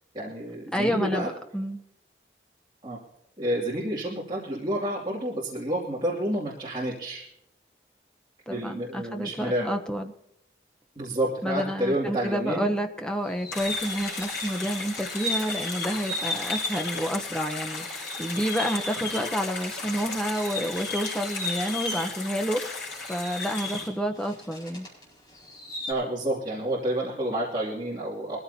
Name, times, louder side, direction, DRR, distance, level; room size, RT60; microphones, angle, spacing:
voice 1, 0.1-1.3 2.8-3.0 3.4-7.2 8.5-9.7 11.0-12.7 25.9-28.4, right 1 dB, 25° right, -7 dB, 2.6 m, -29 dB
voice 2, 0.7-1.8 8.5-10.1 11.4-24.9, equal, 5° left, 4 dB, 0.9 m, -29 dB
sound 1, 13.2-17.4 17.7-25.0 25.3-25.9, left 2 dB, 25° left, 4.9 m, -36 dB
sound 2, 13.5-23.9, left 3 dB, 75° left, 5.6 m, -36 dB
22.0 x 14.5 x 2.8 m, 0.82 s
head